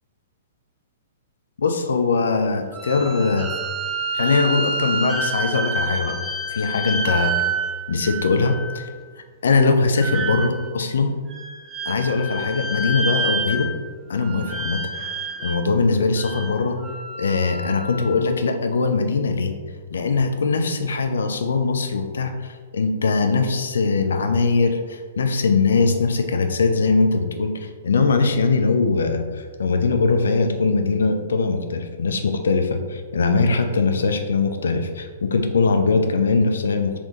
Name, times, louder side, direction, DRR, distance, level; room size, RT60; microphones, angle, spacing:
voice 1, 1.6-3.5 4.1-6.2 6.5-7.4 7.9-8.9 9.4-11.1 11.9-13.7 14.1-14.8 15.4-16.8 17.2-19.5 19.9-36.9, left 4 dB, 60° left, 6 dB, 0.5 m, -21 dB
sound 1, 2.7-8.9 10.0-10.8 11.3-13.9 14.2-15.7 16.2-18.2, right 2 dB, 15° right, 0.5 m, -28 dB
4.0 x 2.9 x 3.8 m, 1.5 s
figure-of-eight pair, 110°, 0 cm